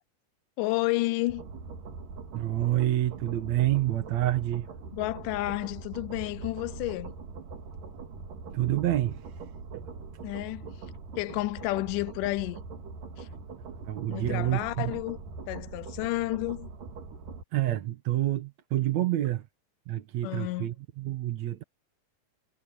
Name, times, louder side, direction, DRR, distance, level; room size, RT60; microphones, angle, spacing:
voice 1, 0.6-1.4 4.9-7.1 10.2-10.8 11.2-12.6 13.2-13.3 14.1-15.2 15.5-16.7 20.2-20.7, left 19 dB, 85° left, 2.1 m, -31 dB
The Canyon Rave, 1.3-17.4, right 4 dB, 80° right, 4.4 m, -42 dB
voice 2, 2.3-4.7 8.5-9.3 9.7-9.9 13.8-14.9 17.5-19.5 19.9-21.6, right 14 dB, 65° right, 2.3 m, -28 dB
omnidirectional pair, 3.7 m